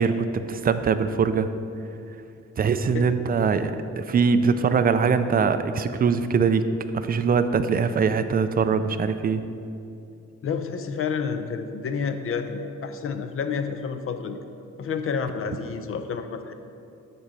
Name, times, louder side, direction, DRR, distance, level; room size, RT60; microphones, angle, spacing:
voice 1, 0.0-1.5 2.6-6.7 6.9-9.4, right 5 dB, 30° right, 10 dB, 0.4 m, -22 dB
voice 2, 10.4-14.4 14.8-16.5, left 6 dB, 45° left, 8 dB, 0.6 m, -29 dB
12.0 x 4.2 x 5.2 m, 2.6 s
cardioid pair, 140°, 30 cm